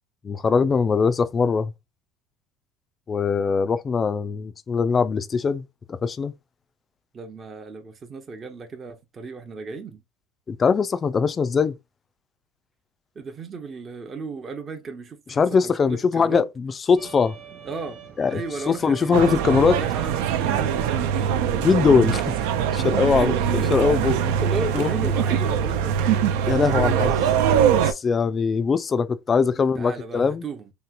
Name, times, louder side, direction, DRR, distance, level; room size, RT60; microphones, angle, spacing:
voice 1, 0.2-1.7 3.1-6.3 10.5-11.8 15.4-17.3 18.2-18.4 18.7-19.8 21.6-22.3 22.7-23.3 23.7-24.1 24.7-24.9 26.5-27.1 27.8-30.4, left 5 dB, 25° left, 0.3 m, -21 dB
voice 2, 7.1-10.0 13.2-16.5 17.6-18.0 18.3-19.2 19.7-21.6 23.1-27.0 29.5-30.7, right 4 dB, 30° right, 0.6 m, -35 dB
sound 1, 17.0-22.3, right 7 dB, 55° right, 1.1 m, -43 dB
sound 2, 19.1-27.9, right 8 dB, 85° right, 0.4 m, -22 dB
3.2 x 2.9 x 2.3 m
supercardioid pair, 120°, 0 cm